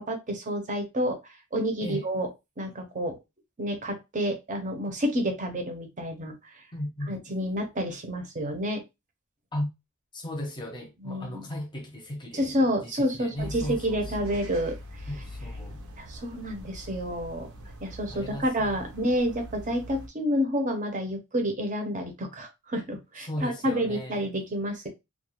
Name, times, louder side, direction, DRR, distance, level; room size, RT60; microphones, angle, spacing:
voice 1, 0.0-2.3 2.6-3.2 3.6-6.6 7.1-8.8 11.0-11.5 12.3-14.8 16.0-17.5 17.8-24.9, equal, 35° right, 0.7 m, -29 dB
voice 2, 6.7-7.1 9.5-9.7 10.1-12.5 12.8-14.4 15.1-15.8 18.1-18.7 23.2-24.2, left 1 dB, 20° left, 0.7 m, -36 dB
sound 1, 13.4-20.1, left 1 dB, 75° right, 0.7 m, -42 dB
2.3 x 2.2 x 2.9 m
head